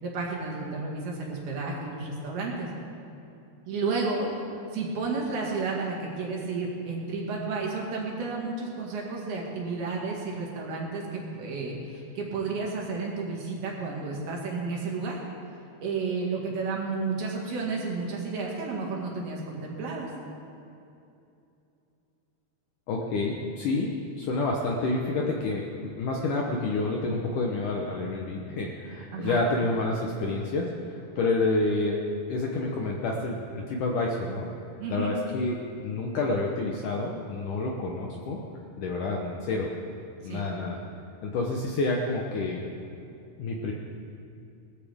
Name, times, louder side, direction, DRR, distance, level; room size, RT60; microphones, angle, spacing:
voice 1, 0.0-2.7 3.7-4.4 4.7-15.2 15.8-20.1 29.1-29.4 34.8-35.1 40.2-40.4, right 4 dB, 70° right, -2 dB, 3.9 m, -32 dB
voice 2, 22.9-23.9 24.2-30.7 31.2-32.0 32.3-34.5 34.9-38.4 38.8-39.7 40.2-40.8 41.2-42.6 42.9-43.0 43.4-43.7, left 2 dB, 70° left, 0 dB, 2.0 m, -28 dB
19.5 x 14.0 x 3.6 m, 2.7 s
omnidirectional pair, 4.7 m